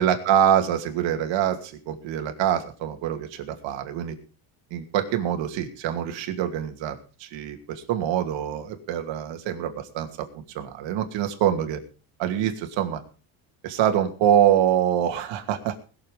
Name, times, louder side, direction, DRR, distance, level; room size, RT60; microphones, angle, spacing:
voice 1, 0.0-4.1 4.7-11.8 12.2-13.0 13.6-15.7, right 10 dB, 70° right, 5 dB, 2.6 m, -25 dB
21.0 x 7.3 x 5.1 m, 0.36 s
cardioid pair, 160°, 48 cm